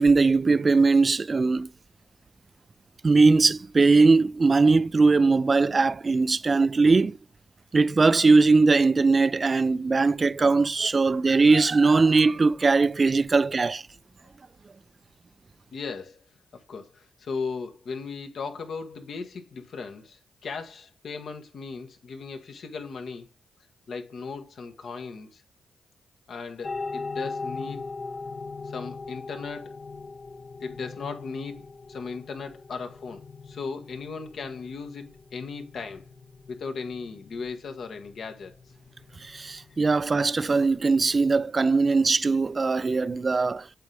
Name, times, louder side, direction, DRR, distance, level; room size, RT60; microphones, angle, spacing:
voice 1, 0.0-1.7 3.0-7.2 7.7-13.8 39.3-43.6, right 3 dB, 40° right, 0.4 m, -20 dB
voice 2, 15.7-16.2 16.5-23.3 23.9-25.4 26.3-27.9 28.6-29.8 30.6-36.0 36.5-38.6, left 4 dB, 65° left, 1.3 m, -37 dB
sound 1, 26.6-41.4, left 4 dB, 45° left, 0.8 m, -40 dB
8.3 x 4.0 x 3.3 m
supercardioid pair, 50°, 0 cm